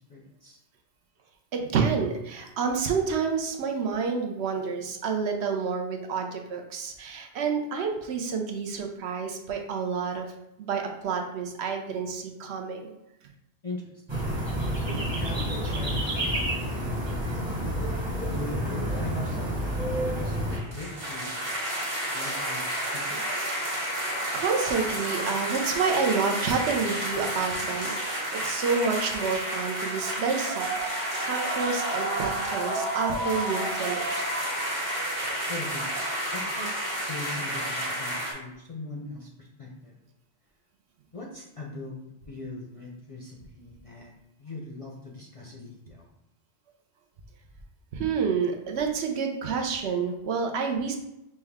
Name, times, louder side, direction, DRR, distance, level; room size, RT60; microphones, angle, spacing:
voice 1, 0.1-0.6 13.6-14.2 14.4-17.1 18.3-21.5 22.1-22.7 22.9-23.2 35.5-35.9 36.3-36.7 37.1-40.0 41.1-42.0 42.3-44.1 44.4-46.1, left 2 dB, 40° left, -2 dB, 0.5 m, -40 dB
voice 2, 1.5-10.3 10.6-12.9 24.3-30.7 31.0-34.2 47.9-51.0, right 5 dB, 70° right, 3 dB, 0.9 m, -29 dB
sound 1, 14.1-20.6, right 1 dB, 25° right, 1.0 m, -29 dB
sound 2, 20.4-38.3, right 1 dB, 55° right, 1.6 m, -30 dB
5.7 x 2.2 x 3.4 m, 0.87 s
omnidirectional pair, 1.2 m